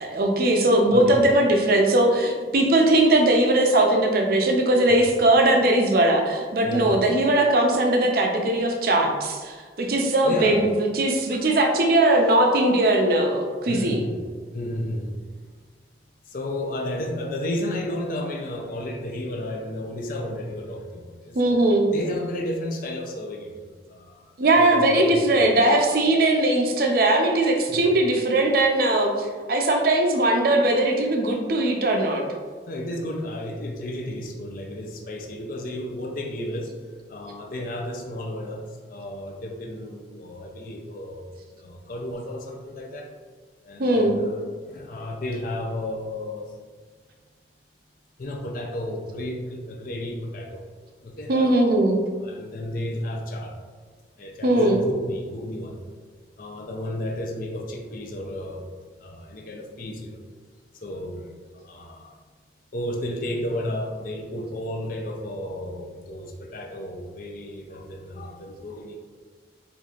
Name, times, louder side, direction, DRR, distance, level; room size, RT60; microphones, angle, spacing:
voice 1, 0.0-14.0 21.3-21.9 24.4-32.2 43.8-44.2 51.3-52.0 54.4-54.8, right 1 dB, 55° right, 2 dB, 0.5 m, -20 dB
voice 2, 0.9-1.2 4.9-5.0 6.6-6.9 10.2-10.6 13.7-14.2 14.5-15.2 16.3-21.4 21.9-25.3 27.7-28.0 32.7-36.7 37.1-41.3 41.6-43.1 43.6-44.3 44.7-46.5 48.2-50.6 51.0-51.7 52.2-53.5 54.2-55.8 56.4-58.7 59.0-60.2 60.8-61.2 61.6-62.2 62.7-69.0, left 1 dB, 50° left, 1 dB, 0.4 m, -33 dB
4.5 x 2.6 x 2.4 m, 1.5 s
head